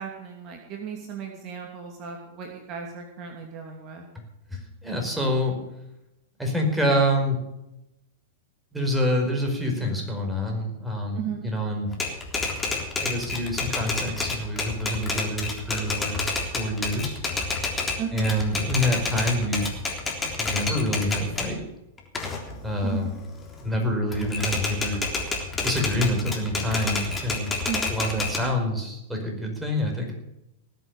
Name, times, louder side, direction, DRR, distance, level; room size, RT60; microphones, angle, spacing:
voice 1, 0.0-4.0 11.1-11.5 18.0-18.3 22.8-23.1 27.6-27.9, right 7 dB, 40° right, 2 dB, 2.8 m, -35 dB
voice 2, 4.5-5.6 6.4-7.4 8.7-11.9 13.0-17.2 18.1-19.7 20.3-21.6 22.6-23.1 23.6-25.0 25.6-27.6 27.9-30.1, equal, 5° right, 1 dB, 4.9 m, -27 dB
Typewriter, 11.9-21.5 22.0-23.8 24.1-28.4, left 3 dB, 15° left, 3.6 m, -29 dB
19.0 x 8.2 x 7.2 m, 0.87 s
figure-of-eight pair, 100°, 0 cm